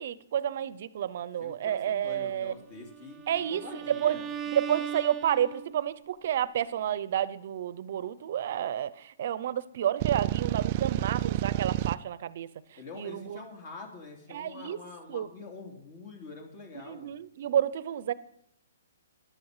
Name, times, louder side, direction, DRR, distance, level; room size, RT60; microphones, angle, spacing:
voice 1, 0.0-2.5 3.3-4.2 4.5-12.5 12.9-13.4 14.3-14.8 15.1-15.3 16.9-18.1, right 10 dB, 50° right, 0.8 m, -30 dB
voice 2, 1.4-4.3 12.8-17.1, left 4 dB, 35° left, 2.9 m, -45 dB
Bowed string instrument, 2.8-5.9, right 8 dB, 10° right, 0.9 m, -38 dB
sound 1, 10.0-11.9, right 16 dB, 35° right, 0.4 m, -29 dB
14.0 x 11.5 x 5.0 m
hypercardioid pair, 155°, 0 cm